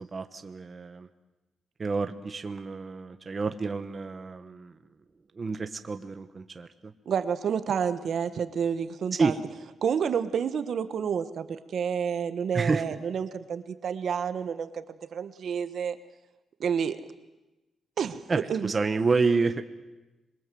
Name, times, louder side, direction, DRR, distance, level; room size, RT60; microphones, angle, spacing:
voice 1, 0.1-1.1 1.8-4.8 5.3-6.9 9.1-9.3 12.5-12.8 18.3-19.6, right 4 dB, 30° right, 8 dB, 1.3 m, -29 dB
voice 2, 7.0-9.3 9.8-14.8 15.1-16.0 16.6-17.0 18.0-18.2 18.5-18.7, right 7 dB, 60° right, 11 dB, 1.3 m, -29 dB
26.5 x 22.5 x 7.8 m, 1.0 s
cardioid pair, 125°, 0 cm